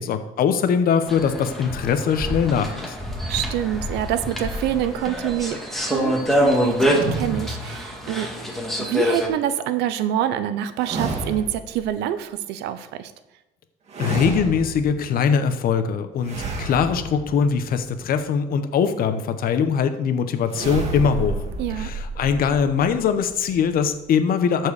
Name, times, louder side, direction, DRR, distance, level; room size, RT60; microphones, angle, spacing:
voice 1, 0.0-2.9 14.0-21.4 21.7-24.7, left 6 dB, 60° left, 9 dB, 0.9 m, -22 dB
sound 1, 1.1-9.3, equal, ahead, 1.8 m, -25 dB
voice 2, 3.3-8.5 8.8-13.1 21.6-21.9, right 11 dB, 90° right, 12 dB, 0.7 m, -26 dB
sound 2, 6.8-8.4 10.8-11.8 13.9-15.1 16.2-18.0 20.5-24.1, right 3 dB, 40° right, 2.6 m, -31 dB
13.5 x 4.7 x 4.9 m, 0.96 s
cardioid pair, 110°, 17 cm